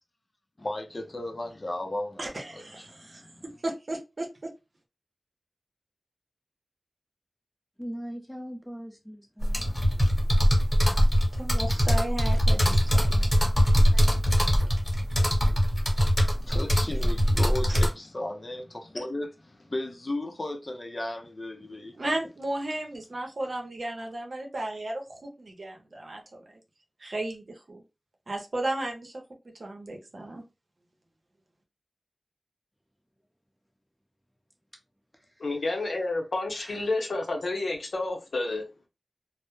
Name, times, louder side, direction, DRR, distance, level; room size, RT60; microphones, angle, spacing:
voice 1, 0.6-3.6 16.2-22.1 23.4-23.5, left 1 dB, 45° left, 0.5 m, -35 dB
voice 2, 2.2-4.5 11.4-13.3 17.7-17.8 22.0-26.4 27.0-27.8 28.3-30.4, right 1 dB, 65° right, 0.7 m, -35 dB
voice 3, 7.8-9.7 12.2-12.7 13.9-14.0 14.5-14.7 35.2-35.5 35.8-35.9 36.5-36.8, equal, 5° left, 0.8 m, -42 dB
sound 1, 9.4-17.9, equal, 25° left, 1.1 m, -22 dB
voice 4, 35.4-38.6, left 2 dB, 85° left, 0.6 m, -30 dB
2.1 x 2.0 x 3.0 m
cardioid pair, 45°, 0 cm